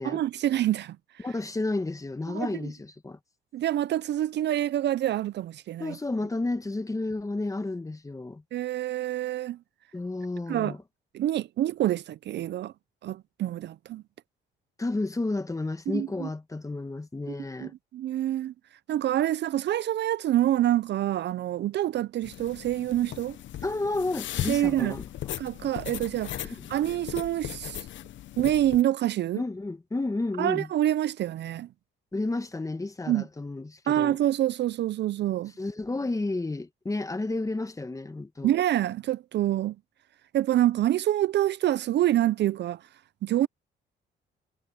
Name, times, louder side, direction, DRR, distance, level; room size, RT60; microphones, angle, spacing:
voice 1, 0.0-1.3 2.3-2.7 3.5-6.0 8.5-9.6 10.5-10.7 11.1-12.7 13.0-14.0 15.9-16.3 17.6-18.5 18.9-23.4 24.5-25.0 25.4-27.8 28.4-29.4 30.4-31.7 33.1-33.2 33.9-35.5 38.4-39.8 40.3-42.8 43.2-43.5, right 13 dB, 60° right, 0.5 m, -26 dB
voice 2, 1.2-3.2 5.8-8.4 9.9-10.8 14.8-17.7 23.6-25.1 26.6-26.7 29.3-30.7 32.1-34.2 35.6-38.5, left 2 dB, 15° left, 1.3 m, -31 dB
sound 1, 22.2-28.8, left 12 dB, 70° left, 0.9 m, -38 dB
cardioid pair, 90°, 20 cm